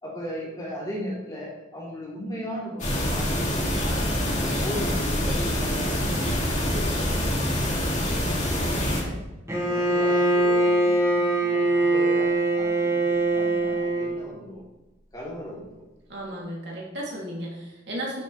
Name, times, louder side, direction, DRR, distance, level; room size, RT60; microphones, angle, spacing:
voice 1, 0.0-4.1 4.4-6.3 6.5-7.0 7.5-7.7 8.5-9.2 9.6-14.6 15.1-15.8, equal, 20° left, -6 dB, 3.2 m, -37 dB
sound 1, 2.8-9.0, equal, 40° left, 2.6 m, -25 dB
Bowed string instrument, 9.5-14.2, right 2 dB, 15° right, 1.5 m, -22 dB
voice 2, 16.1-18.2, right 1 dB, 60° right, -4 dB, 2.8 m, -34 dB
12.0 x 6.8 x 3.3 m, 1.0 s
head